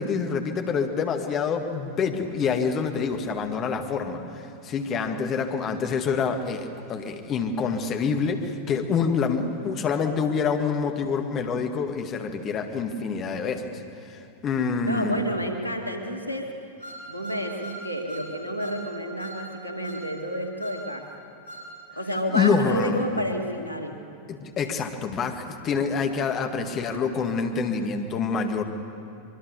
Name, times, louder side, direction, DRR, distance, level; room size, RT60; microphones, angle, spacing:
voice 1, 0.0-4.2 4.6-15.2 22.3-23.2 24.3-28.6, left 5 dB, 30° left, 5 dB, 1.9 m, -26 dB
voice 2, 14.8-16.5 17.1-21.1 21.9-24.0, equal, 85° right, 3 dB, 2.2 m, -30 dB
sound 1, 16.8-18.3 18.6-18.8 19.2-19.4 19.8-20.1 20.6-20.8 21.5-21.7, right 1 dB, 85° left, 4.7 m, -40 dB
24.5 x 23.5 x 6.9 m, 2.6 s
figure-of-eight pair, 90°, 0 cm